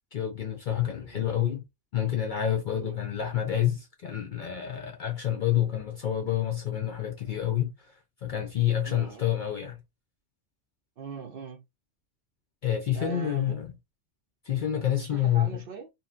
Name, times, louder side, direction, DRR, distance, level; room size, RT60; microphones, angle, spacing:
voice 1, 0.1-1.6 1.9-7.9 8.2-9.8 12.6-13.7 14.4-15.6, left 11 dB, 55° left, 0.5 m, -28 dB
voice 2, 8.9-9.4 11.0-11.6 12.9-13.6 14.7-15.9, right 5 dB, 55° right, 0.7 m, -41 dB
2.7 x 2.6 x 2.4 m
omnidirectional pair, 1.2 m